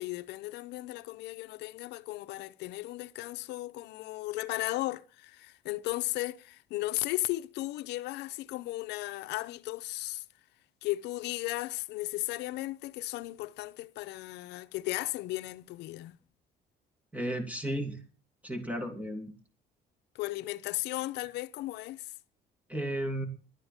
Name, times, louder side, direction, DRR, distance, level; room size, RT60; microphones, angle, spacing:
voice 1, 0.0-10.2 10.8-16.2 20.1-22.1, left 18 dB, 85° left, 0.8 m, -35 dB
voice 2, 17.1-18.0 18.4-19.3 22.7-23.3, right 1 dB, 10° right, 2.8 m, -34 dB
12.0 x 9.6 x 7.2 m
cardioid pair, 110°, 17 cm